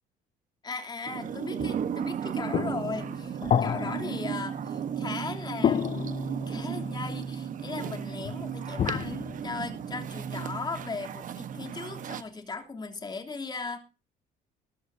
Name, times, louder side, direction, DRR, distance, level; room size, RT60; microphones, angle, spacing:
voice 1, 0.6-6.0 6.3-13.8, left 4 dB, 25° left, 3.2 m, -37 dB
sound 1, 1.0-12.2, right 7 dB, 50° right, 1.2 m, -35 dB
sound 2, 1.1-5.2 5.6-7.1 8.2-10.3, left 8 dB, 40° left, 0.7 m, -31 dB
19.5 x 14.0 x 2.8 m
cardioid pair, 110°, 17 cm